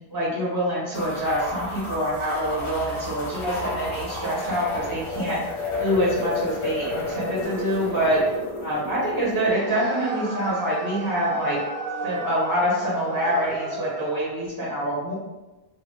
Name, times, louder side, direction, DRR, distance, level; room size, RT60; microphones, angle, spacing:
voice 1, 0.1-5.4 5.8-8.2 8.6-11.6 12.0-15.1, equal, 25° right, -7 dB, 0.6 m, -25 dB
sound 1, 0.9-9.5, left 2 dB, 45° left, 0.4 m, -32 dB
sound 2, 9.4-14.3, right 3 dB, 85° right, 0.9 m, -33 dB
2.5 x 2.1 x 3.0 m, 1.1 s
omnidirectional pair, 1.1 m